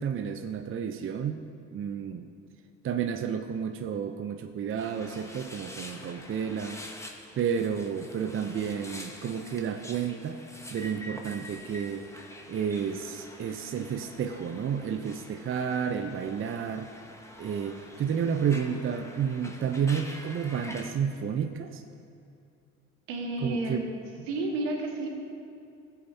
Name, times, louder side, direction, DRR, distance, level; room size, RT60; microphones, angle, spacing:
voice 1, 0.0-1.5 1.7-2.3 2.8-6.8 7.3-10.4 10.7-12.1 12.5-16.9 17.4-21.8 23.4-23.9 24.2-24.3, right 7 dB, 35° right, 7 dB, 0.6 m, -31 dB
sound 1, 4.8-20.9, left 1 dB, 10° left, 1.3 m, -46 dB
voice 2, 23.1-23.8 24.3-25.1, right 2 dB, 80° right, -1 dB, 1.9 m, -31 dB
15.5 x 8.3 x 2.7 m, 2.6 s
hypercardioid pair, 65°, 36 cm